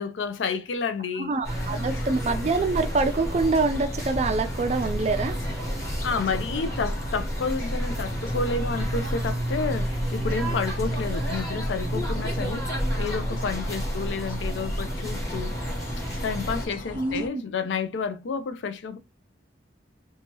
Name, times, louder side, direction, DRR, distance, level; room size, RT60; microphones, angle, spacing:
voice 1, 0.0-1.3 6.0-12.7 13.0-15.6 16.2-19.0, left 4 dB, 85° left, 0.4 m, -30 dB
voice 2, 1.2-5.4 16.9-17.4, right 3 dB, 35° right, 0.4 m, -25 dB
sound 1, 1.4-16.7, equal, 15° left, 1.2 m, -30 dB
sound 2, 1.5-17.3, left 1 dB, 50° left, 0.7 m, -39 dB
2.9 x 2.3 x 2.9 m
head